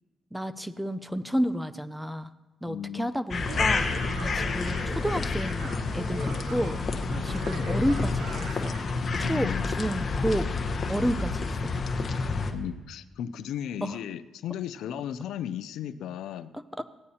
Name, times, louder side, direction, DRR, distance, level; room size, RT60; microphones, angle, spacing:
voice 1, 0.3-2.3 2.6-3.9 4.2-6.8 7.2-8.7 9.2-10.5 10.9-11.6 13.8-14.0 16.5-16.8, equal, 5° right, 13 dB, 0.5 m, -31 dB
voice 2, 2.6-3.1 9.2-9.7 12.5-16.5, left 10 dB, 80° left, 13 dB, 0.4 m, -35 dB
sound 1, 3.3-12.5, left 4 dB, 40° left, 1.0 m, -29 dB
Laughter, 3.3-8.9, right 2 dB, 80° right, 2.7 m, -41 dB
17.0 x 9.5 x 2.8 m, 1.2 s
cardioid pair, 90°, 0 cm